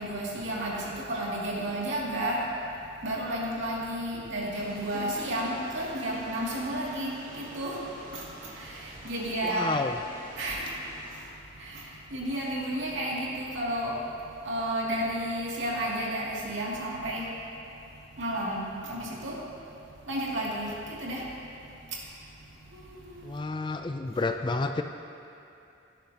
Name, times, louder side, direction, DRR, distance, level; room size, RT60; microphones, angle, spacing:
voice 1, 0.0-2.5 3.0-7.8 8.1-8.3 8.6-9.8 10.4-10.7 11.1-11.2 11.6-14.0 14.4-17.3 18.2-19.4 20.1-21.3 22.7-23.2, right 1 dB, 65° right, -5 dB, 2.4 m, -32 dB
sound 1, 4.5-11.1, right 1 dB, 40° right, 2.8 m, -46 dB
voice 2, 9.4-10.0 23.2-24.8, left 3 dB, 25° left, 7 dB, 0.3 m, -30 dB
17.5 x 10.5 x 2.8 m, 2.7 s
head